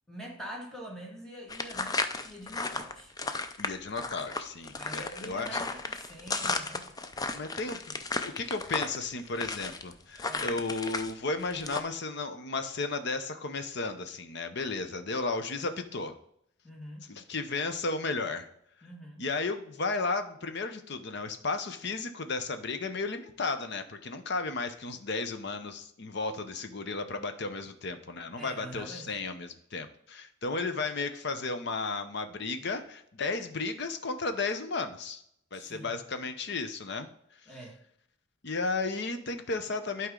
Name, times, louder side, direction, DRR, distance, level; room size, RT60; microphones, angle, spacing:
voice 1, 0.1-3.1 4.7-6.9 10.2-10.5 16.6-17.1 18.8-19.2 28.4-29.1 35.5-36.0 37.5-37.8, equal, ahead, -2 dB, 1.7 m, -45 dB
sound 1, 1.5-11.1 11.4-11.8, left 3 dB, 20° left, 0.4 m, -34 dB
voice 2, 3.6-5.6 7.3-16.1 17.1-18.5 19.2-35.2 35.5-37.1 38.4-40.1, left 3 dB, 55° left, 9 dB, 0.8 m, -34 dB
11.0 x 4.7 x 3.8 m, 0.72 s
head